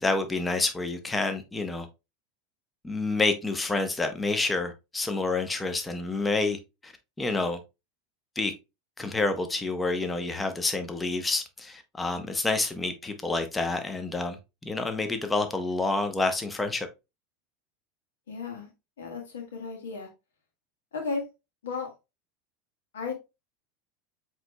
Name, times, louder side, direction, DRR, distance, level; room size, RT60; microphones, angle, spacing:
voice 1, 0.0-1.9 2.8-6.9 7.2-7.6 8.4-8.5 9.0-14.4 14.6-16.9, left 3 dB, 15° left, 0.7 m, -28 dB
voice 2, 18.3-18.7 19.0-20.1 20.9-21.3 21.6-21.9 22.9-23.1, left 4 dB, 85° left, 1.4 m, -34 dB
7.6 x 3.0 x 2.2 m
hypercardioid pair, 95°, 0 cm